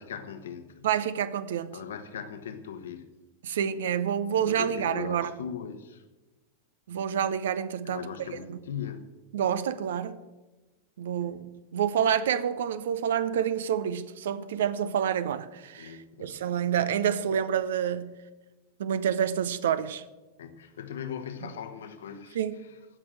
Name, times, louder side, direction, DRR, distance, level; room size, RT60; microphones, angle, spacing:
voice 1, 0.0-0.9 1.7-3.0 4.4-6.0 7.8-9.1 11.2-11.4 15.8-16.4 20.4-22.4, left 8 dB, 65° left, 1.2 m, -39 dB
voice 2, 0.8-1.8 3.4-5.3 6.9-8.1 8.5-8.6 9.3-10.2 11.0-18.2 18.8-20.0 22.3-22.6, right 9 dB, 60° right, 0.7 m, -28 dB
15.5 x 6.1 x 7.9 m
figure-of-eight pair, 90°, 0 cm